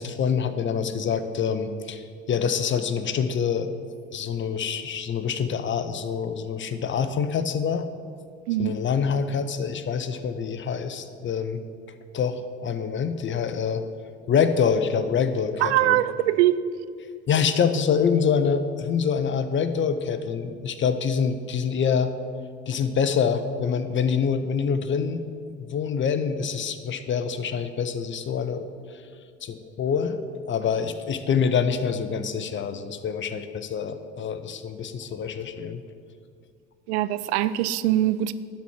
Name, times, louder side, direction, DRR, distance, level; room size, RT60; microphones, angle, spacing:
voice 1, 0.0-3.7 4.1-7.9 8.6-11.6 12.1-13.9 14.3-16.0 17.3-22.1 22.7-25.2 25.7-28.6 29.4-30.2 30.5-35.8, left 6 dB, 35° left, 10 dB, 0.8 m, -26 dB
voice 2, 15.6-16.6 36.9-38.3, right 14 dB, 75° right, 14 dB, 0.5 m, -22 dB
11.5 x 4.3 x 7.4 m, 2.1 s
hypercardioid pair, 65°, 34 cm